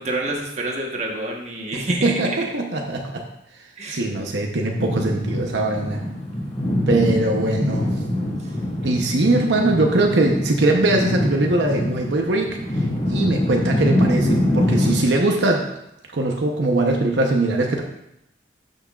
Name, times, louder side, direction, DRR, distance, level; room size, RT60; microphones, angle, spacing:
voice 1, 0.0-2.5 3.8-4.1 8.4-8.6, right 2 dB, 40° right, 0 dB, 1.2 m, -28 dB
voice 2, 2.0-3.2 3.9-6.0 6.9-7.9 8.8-15.7 16.1-17.8, right 2 dB, 70° right, 1 dB, 0.8 m, -21 dB
sound 1, 4.8-15.0, left 1 dB, 35° left, 2.0 m, -24 dB
12.0 x 6.1 x 2.4 m, 0.82 s
head